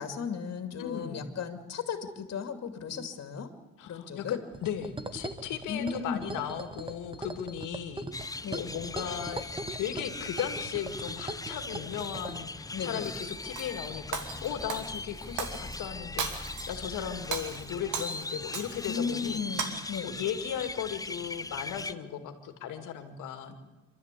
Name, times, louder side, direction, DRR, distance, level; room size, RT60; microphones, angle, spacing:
voice 1, 0.0-3.5 3.8-4.4 5.7-6.3 8.4-8.7 12.7-13.1 18.9-20.2, left 6 dB, 55° left, 7 dB, 2.7 m, -35 dB
voice 2, 0.8-1.3 3.8-19.5 20.0-23.6, left 9 dB, 85° left, 8 dB, 2.4 m, -37 dB
sound 1, 4.5-12.4, right 2 dB, 15° right, 1.5 m, -41 dB
sound 2, 8.1-21.9, left 3 dB, 10° left, 0.7 m, -40 dB
Shatter, 13.0-13.7 14.1-15.8 16.2-16.8 17.2-19.0 19.4-19.7, right 6 dB, 75° right, 2.8 m, -36 dB
26.5 x 12.5 x 8.4 m, 1.1 s
cardioid pair, 90°, 30 cm